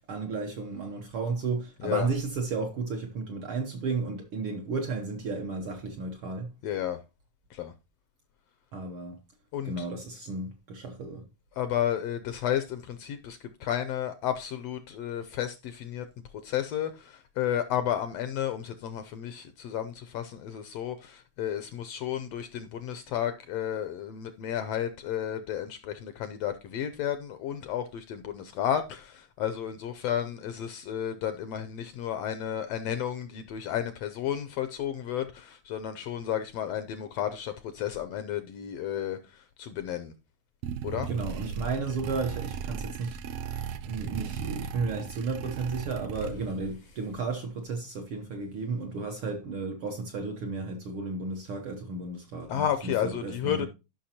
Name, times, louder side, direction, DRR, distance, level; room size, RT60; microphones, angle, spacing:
voice 1, 0.1-6.5 8.7-9.2 9.6-11.2 41.1-53.7, right 4 dB, 65° right, 1.4 m, -33 dB
voice 2, 6.6-7.0 7.5-7.7 9.5-9.9 11.5-16.1 16.4-40.1 40.8-41.1 52.5-53.7, left 10 dB, 75° left, 1.5 m, -32 dB
sound 1, 40.6-46.7, right 7 dB, 80° right, 1.4 m, -36 dB
13.0 x 5.9 x 2.8 m
omnidirectional pair, 3.4 m